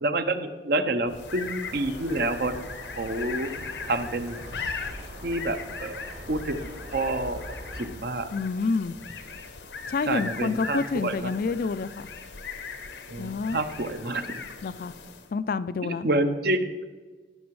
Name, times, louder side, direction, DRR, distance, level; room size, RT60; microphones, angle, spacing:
voice 1, 0.0-2.6 3.0-3.5 3.9-4.4 5.2-8.3 10.0-11.3 13.1-14.4 15.8-16.8, right 2 dB, 60° right, 9 dB, 0.8 m, -28 dB
sound 1, 1.1-15.4, left 5 dB, 80° left, 1.0 m, -39 dB
sound 2, 1.6-7.9, equal, 75° right, 2.0 m, -43 dB
voice 2, 8.3-9.0 9.9-12.1 13.2-13.6 14.6-14.9 15.3-16.1, left 4 dB, 50° left, 14 dB, 0.4 m, -28 dB
16.5 x 6.1 x 4.7 m, 1.3 s
head